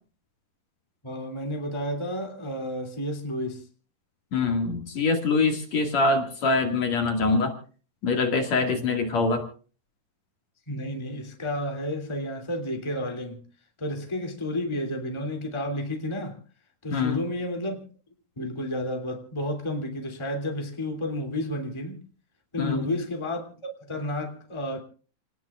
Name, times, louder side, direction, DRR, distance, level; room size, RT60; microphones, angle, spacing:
voice 1, 1.0-3.7 8.7-8.8 10.7-13.4 13.8-16.4 16.8-17.8 18.4-22.0 22.5-23.5 23.8-24.8, left 1 dB, 10° left, 2.4 m, -31 dB
voice 2, 4.3-7.5 8.0-9.4 16.9-17.2 22.6-22.9, left 3 dB, 55° left, 3.1 m, -24 dB
29.0 x 19.5 x 2.4 m
omnidirectional pair, 3.9 m